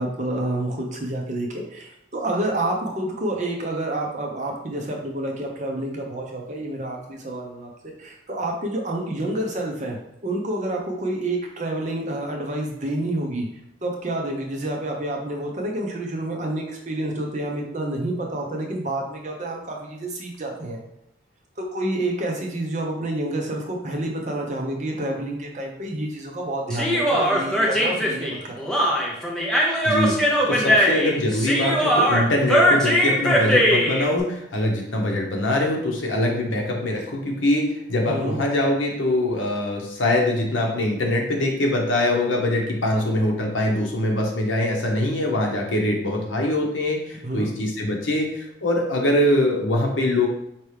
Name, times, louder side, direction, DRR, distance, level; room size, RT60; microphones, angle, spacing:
voice 1, 0.0-10.0 10.2-13.5 13.8-20.8 21.7-28.7 38.1-38.4 47.2-47.5, right 1 dB, 35° right, 0 dB, 0.7 m, -28 dB
Human voice, 26.7-34.1, equal, 5° left, 0.6 m, -20 dB
voice 2, 29.8-50.3, left 1 dB, 75° left, 0 dB, 0.9 m, -23 dB
4.6 x 2.9 x 3.3 m, 0.79 s
head